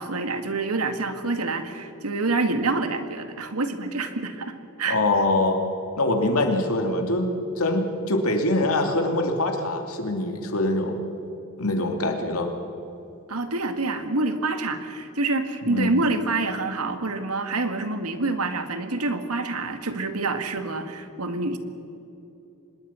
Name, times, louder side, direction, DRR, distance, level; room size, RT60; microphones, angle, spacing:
voice 1, 0.0-5.0 13.3-21.6, right 3 dB, 90° right, 7 dB, 1.9 m, -27 dB
voice 2, 4.9-5.6 6.0-11.0 11.6-12.5 15.7-16.0, left 2 dB, 70° left, 4 dB, 2.7 m, -24 dB
25.5 x 21.0 x 5.7 m, 2.9 s
head